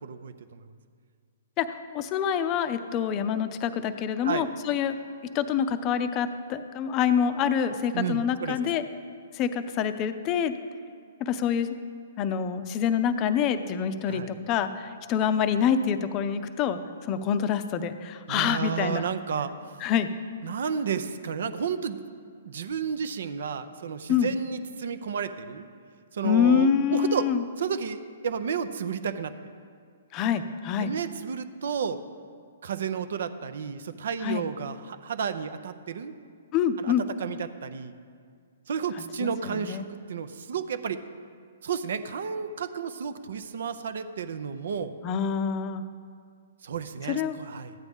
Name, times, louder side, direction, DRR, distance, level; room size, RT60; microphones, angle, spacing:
voice 1, 0.0-0.7 4.2-4.4 7.9-8.6 14.1-14.3 18.3-19.5 20.4-22.0 22.4-25.7 26.1-27.3 27.6-29.3 30.8-32.0 32.6-36.2 36.8-37.9 38.7-41.0 41.6-44.9 46.6-47.7, right 7 dB, 65° right, 11 dB, 0.6 m, -32 dB
voice 2, 1.6-5.0 5.3-8.8 9.3-10.5 11.2-11.8 12.2-16.8 17.1-19.1 19.8-20.1 24.1-24.3 26.2-27.4 30.1-30.9 34.2-34.4 36.5-37.1 39.2-39.8 45.0-45.8 47.1-47.4, left 8 dB, 30° left, 11 dB, 0.6 m, -26 dB
13.5 x 9.1 x 3.6 m, 2.1 s
hypercardioid pair, 130°, 0 cm